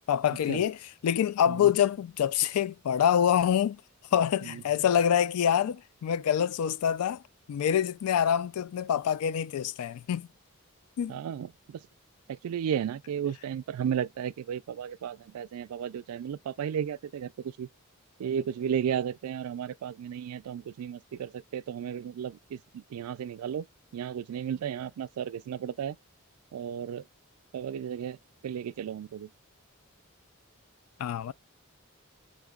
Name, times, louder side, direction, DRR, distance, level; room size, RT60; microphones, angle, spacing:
voice 1, 0.1-3.8 4.1-7.2 7.5-10.3 11.0-11.1 31.0-31.3, left 9 dB, 85° left, 0.3 m, -26 dB
voice 2, 11.1-11.8 12.3-17.3 17.6-17.7 18.2-23.6 23.9-26.0 26.5-27.0 27.5-28.2 28.4-29.3, right 8 dB, 85° right, 0.3 m, -34 dB
5.0 x 2.9 x 2.3 m
head